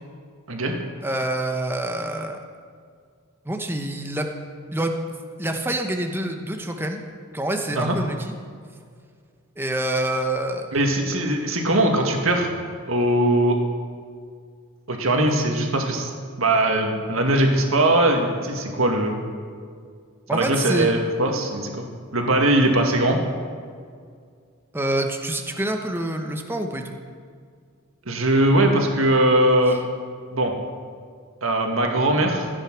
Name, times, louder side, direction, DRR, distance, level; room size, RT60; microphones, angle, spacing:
voice 1, 1.0-2.4 3.4-4.3 4.7-4.9 5.4-7.0 7.3-8.3 9.6-10.7 20.3-20.9 24.7-27.0 29.7-29.8, right 1 dB, 10° right, 4 dB, 1.0 m, -26 dB
voice 2, 10.7-12.5 12.9-13.6 14.9-16.1 16.4-19.2 20.3-21.9 22.1-23.2 28.1-29.8 30.3-30.5 31.4-32.5, right 1 dB, 65° right, 2 dB, 1.9 m, -20 dB
15.0 x 8.9 x 6.2 m, 2.1 s
head